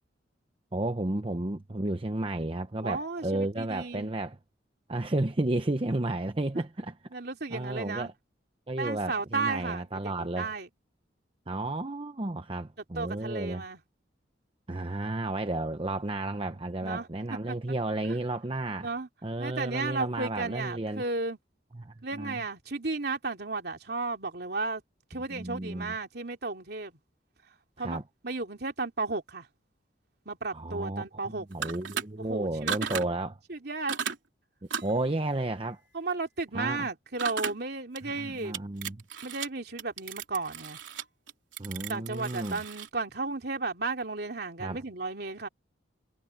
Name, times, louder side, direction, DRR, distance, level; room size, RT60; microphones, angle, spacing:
voice 1, 0.7-4.4 4.9-6.9 7.5-8.1 8.7-10.5 11.5-13.6 14.7-18.9 19.2-21.0 21.7-22.4 25.3-25.9 27.8-28.0 30.5-33.4 34.8-35.8 36.5-36.9 38.2-39.0 41.6-42.6 44.6-44.8, right 2 dB, 30° right, 0.8 m, -32 dB
voice 2, 2.8-4.1 6.5-6.6 7.1-8.1 8.8-10.7 12.9-13.8 16.8-17.1 17.5-17.6 18.0-18.2 18.8-19.1 19.4-21.4 22.0-24.8 25.1-26.9 27.8-28.0 28.2-29.5 30.2-31.5 32.2-32.7 33.5-33.9 35.9-38.6 39.2-40.8 41.9-45.5, right 3 dB, 60° right, 3.0 m, -34 dB
sound 1, 31.5-32.0 32.7-33.1 33.9-34.2 34.7-35.0 37.2-37.6 38.0-38.1 38.5-39.5 39.8-42.9, right 7 dB, 85° right, 3.4 m, -35 dB
head